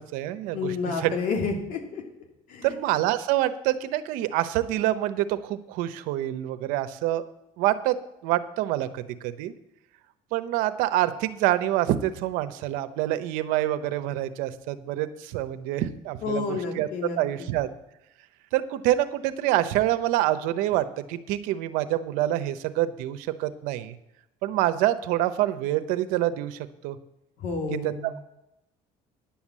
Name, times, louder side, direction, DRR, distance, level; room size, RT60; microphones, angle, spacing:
voice 1, 0.0-1.1 2.6-7.2 7.6-8.0 8.2-9.5 10.3-16.9 17.2-17.7 18.5-23.9 24.4-27.0 27.8-28.2, right 14 dB, 85° right, 11 dB, 0.8 m, -26 dB
voice 2, 0.5-2.0 2.5-2.7 16.2-17.5 27.4-28.1, left 4 dB, 75° left, 2 dB, 2.6 m, -30 dB
10.5 x 7.2 x 7.3 m, 0.86 s
cardioid pair, 105°, 14 cm